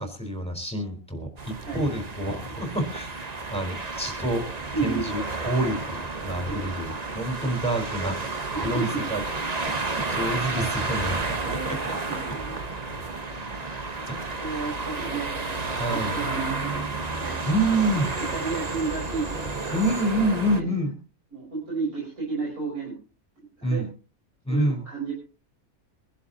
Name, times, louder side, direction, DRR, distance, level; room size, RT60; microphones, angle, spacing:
voice 1, 0.0-3.1 3.5-4.4 4.8-8.4 8.6-9.2 9.7-11.2 14.1-14.3 15.8-16.2 17.5-18.1 19.7-21.0 23.6-23.9 24.4-24.8, right 1 dB, 5° left, 5 dB, 4.2 m, -27 dB
sound 1, 1.4-20.6, right 3 dB, 30° right, 1.2 m, -31 dB
voice 2, 4.7-5.1 6.5-6.7 8.5-9.0 11.4-11.8 12.1-12.6 13.0-13.2 13.9-17.4 17.9-18.0 18.3-19.8 20.6-20.7 21.3-23.0 23.6-23.8 24.5-25.1, right 4 dB, 80° right, -3 dB, 5.7 m, -33 dB
24.0 x 11.5 x 2.8 m, 0.34 s
omnidirectional pair, 1.5 m